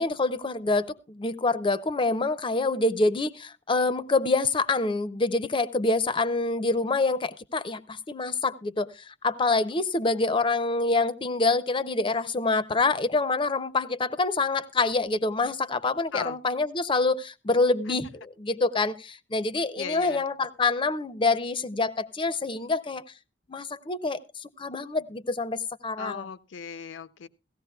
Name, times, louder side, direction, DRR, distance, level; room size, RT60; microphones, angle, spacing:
voice 1, 0.0-18.1 18.4-23.0 23.5-26.3, left 3 dB, 25° left, 0.5 m, -26 dB
voice 2, 19.8-20.2 26.0-27.3, left 6 dB, 75° left, 0.6 m, -36 dB
17.5 x 15.5 x 2.3 m
head